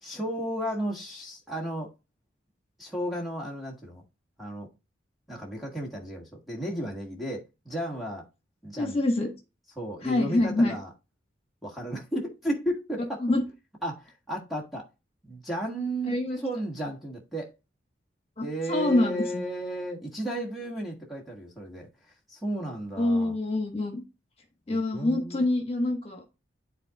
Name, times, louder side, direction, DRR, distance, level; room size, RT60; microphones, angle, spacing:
voice 1, 0.0-1.9 2.8-4.0 4.4-4.7 5.3-8.2 8.6-9.0 9.7-10.9 11.6-13.2 13.8-14.9 15.2-17.5 18.4-21.9 22.3-23.4 24.7-25.4, right 1 dB, ahead, 1.5 m, -34 dB
voice 2, 8.7-9.3 10.0-10.8 13.2-13.4 16.1-16.4 18.4-19.4 23.0-24.0 24.7-26.2, left 2 dB, 30° left, 1.4 m, -26 dB
11.0 x 4.0 x 2.4 m
head